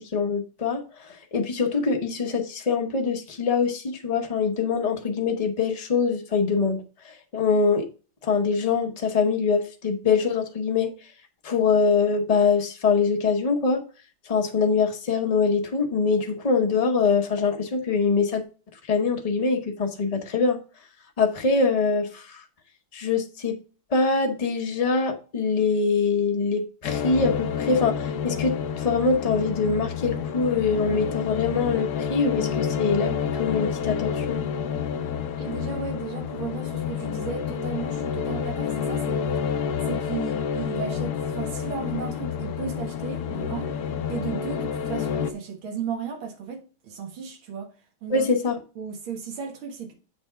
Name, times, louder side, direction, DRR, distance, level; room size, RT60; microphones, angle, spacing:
voice 1, 0.1-0.8 1.3-7.9 8.2-10.9 11.4-13.8 14.3-18.4 18.9-20.6 21.2-22.4 22.9-23.6 23.9-34.4 48.1-48.6, left 5 dB, 35° left, 0.5 m, -24 dB
sound 1, 26.8-45.3, left 7 dB, 65° left, 1.0 m, -29 dB
voice 2, 35.4-39.2 39.8-43.7 44.1-47.7 48.0-48.3 48.8-49.9, right 6 dB, 85° right, 2.3 m, -34 dB
7.9 x 3.5 x 5.6 m
omnidirectional pair, 2.2 m